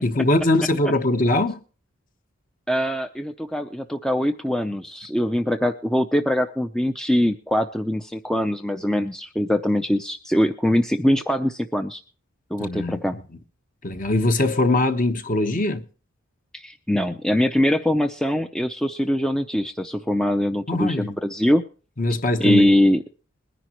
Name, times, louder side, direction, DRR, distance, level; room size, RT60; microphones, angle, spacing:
voice 1, 0.0-1.6 12.6-13.0 13.8-15.8 20.7-21.1 22.0-22.7, left 2 dB, 40° left, 1.0 m, -21 dB
voice 2, 2.7-12.0 12.5-13.2 16.5-21.6 22.4-23.0, equal, 5° left, 0.5 m, -22 dB
21.5 x 10.0 x 3.0 m
head